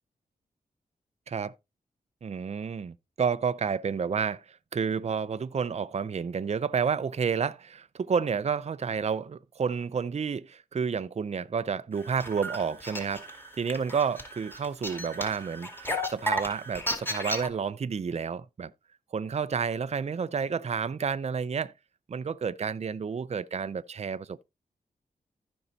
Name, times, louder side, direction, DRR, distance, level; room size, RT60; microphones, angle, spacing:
voice 1, 2.2-13.3 13.6-18.7 19.1-21.7 22.1-24.4, right 6 dB, 45° right, 0.5 m, -30 dB
sound 1, 12.0-17.5, equal, 15° left, 2.5 m, -34 dB
15.5 x 5.4 x 2.8 m
cardioid pair, 65°, 16 cm